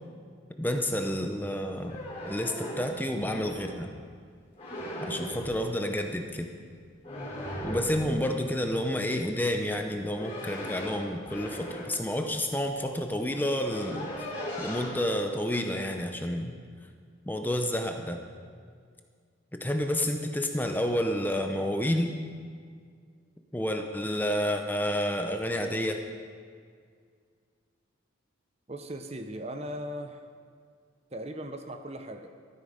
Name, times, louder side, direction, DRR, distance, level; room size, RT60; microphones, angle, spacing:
voice 1, 0.6-3.9 5.0-6.5 7.6-14.1 14.6-16.5 17.3-18.2 19.5-22.1 23.5-26.0, equal, 10° left, 5 dB, 0.7 m, -30 dB
sound 1, 1.7-3.9 4.6-5.6 7.0-8.2 9.8-12.1 12.9-13.0 13.3-14.9, equal, 30° left, 3.5 m, -38 dB
voice 2, 28.7-30.3 31.1-32.3, right 1 dB, 30° right, 6 dB, 0.8 m, -38 dB
13.5 x 12.5 x 5.1 m, 2.1 s
head